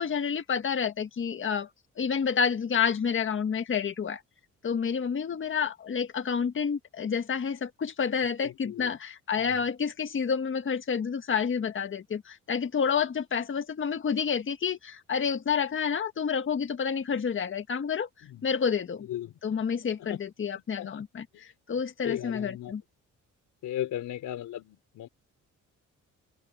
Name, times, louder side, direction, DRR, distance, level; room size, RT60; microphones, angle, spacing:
voice 1, 0.0-1.7 2.0-4.2 4.6-18.1 18.4-19.1 19.4-22.8, left 6 dB, 40° left, 1.7 m, -29 dB
voice 2, 8.4-9.0 9.3-9.7 18.2-18.5 19.0-19.6 20.0-20.2 20.8-21.0 21.3-21.4 22.0-22.7 23.6-25.1, left 12 dB, 80° left, 4.5 m, -37 dB
open air
cardioid pair, 90°, 30 cm